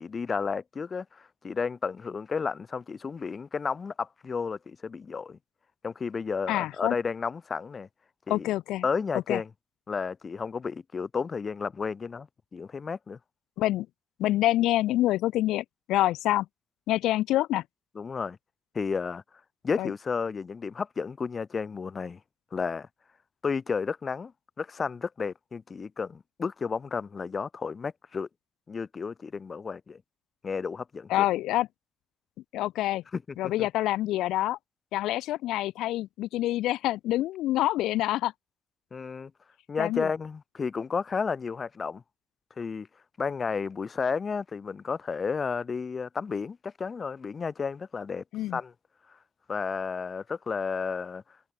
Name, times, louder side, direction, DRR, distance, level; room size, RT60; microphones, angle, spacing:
voice 1, 0.0-5.4 5.8-7.9 8.3-8.5 8.8-9.5 9.9-13.2 17.9-18.4 18.7-19.2 19.6-22.2 22.5-22.9 23.4-24.3 24.6-28.3 28.7-30.0 30.4-31.3 33.1-33.7 38.9-39.3 39.7-42.0 42.6-42.9 43.2-48.2 48.5-48.7 49.5-51.2, left 5 dB, 40° left, 4.9 m, -32 dB
voice 2, 6.5-6.9 8.3-8.8 9.1-9.4 13.6-13.9 14.2-16.5 16.9-17.6 19.8-19.9 31.1-31.7 32.5-33.0 33.4-34.6 34.9-38.3 39.8-40.1 48.3-48.6, left 15 dB, 90° left, 0.5 m, -26 dB
cardioid pair, 90°, 0 cm